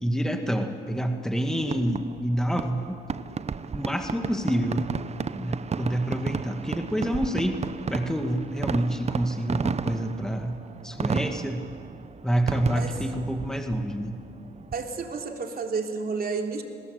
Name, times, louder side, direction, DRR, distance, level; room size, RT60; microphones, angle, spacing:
voice 1, 0.0-3.0 3.7-4.9 5.4-7.6 7.9-11.6 12.2-14.2, equal, 5° left, 5 dB, 2.0 m, -28 dB
Fireworks, 1.6-15.2, right 5 dB, 35° right, 0.8 m, -33 dB
voice 2, 14.7-16.6, right 4 dB, 50° right, 3 dB, 3.3 m, -31 dB
28.5 x 20.0 x 8.2 m, 2.4 s
cardioid pair, 90°, 20 cm